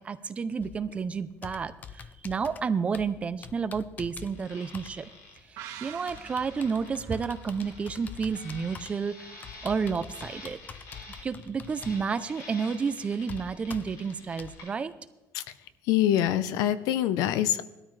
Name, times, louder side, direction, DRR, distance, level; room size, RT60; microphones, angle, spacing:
voice 1, 0.0-5.1 5.8-9.3 9.6-10.6 11.2-14.9, right 5 dB, 20° right, 12 dB, 0.5 m, -31 dB
Computer keyboard, 0.6-14.6, left 6 dB, 25° left, 0.5 m, -46 dB
sound 1, 4.2-14.7, left 2 dB, 65° left, 3.8 m, -49 dB
sound 2, 5.6-9.0 9.3-9.4, right 10 dB, 90° right, 1.7 m, -47 dB
voice 2, 15.9-17.6, left 11 dB, 85° left, 14 dB, 0.8 m, -25 dB
19.0 x 13.0 x 3.3 m, 1.0 s
cardioid pair, 175°, 6 cm